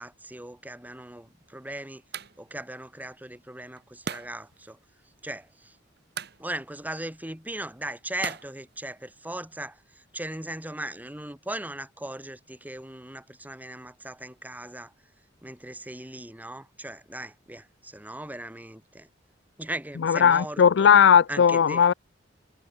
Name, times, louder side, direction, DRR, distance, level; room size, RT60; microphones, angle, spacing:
voice 1, 0.0-2.0 2.4-4.8 5.2-5.8 6.4-14.9 15.4-19.1 19.6-20.9 21.3-21.8, right 1 dB, 10° right, 2.3 m, -38 dB
sound 1, 0.9-9.4, right 5 dB, 60° right, 4.8 m, -44 dB
voice 2, 20.0-21.9, left 7 dB, 65° left, 0.4 m, -18 dB
head